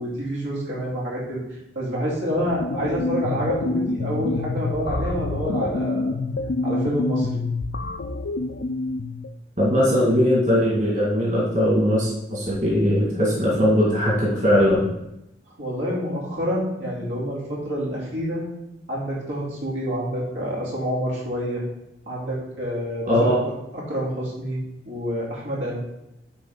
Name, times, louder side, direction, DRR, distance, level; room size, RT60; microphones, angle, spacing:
voice 1, 0.0-1.4 1.7-6.1 6.6-7.4 15.6-18.5 18.9-21.6 22.1-24.6 24.8-25.8, equal, 85° right, -5 dB, 2.9 m, -28 dB
sound 1, 2.2-9.3, left 2 dB, 70° left, 0.5 m, -27 dB
voice 2, 9.6-14.9 23.1-23.4, equal, 40° right, -6 dB, 2.1 m, -20 dB
10.5 x 4.0 x 3.9 m, 0.87 s
head